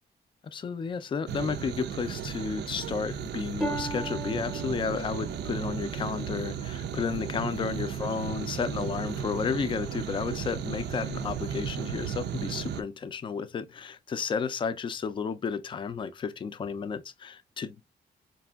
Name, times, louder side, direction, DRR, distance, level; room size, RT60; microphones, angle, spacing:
voice 1, 0.5-17.8, left 6 dB, 30° left, 0.3 m, -32 dB
sound 1, 1.3-12.8, right 8 dB, 85° right, 0.4 m, -35 dB
Harp, 3.6-7.3 7.9-8.3 8.9-9.0, right 1 dB, 5° right, 0.7 m, -38 dB
5.0 x 2.6 x 2.2 m
wide cardioid pair, 175°, 17 cm